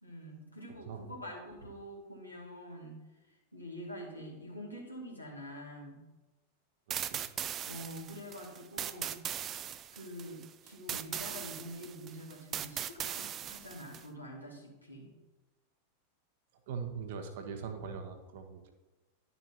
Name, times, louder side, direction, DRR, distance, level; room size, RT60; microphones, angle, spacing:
voice 1, 0.0-6.0 7.7-9.5 9.9-15.1, equal, 90° left, -3 dB, 2.3 m, -46 dB
voice 2, 0.7-1.0 6.9-7.2 16.7-18.7, right 6 dB, 55° right, 5 dB, 1.2 m, -41 dB
sound 1, 6.9-14.0, right 10 dB, 30° right, 0.4 m, -39 dB
11.5 x 6.8 x 3.0 m, 1.1 s
figure-of-eight pair, 90°, 0 cm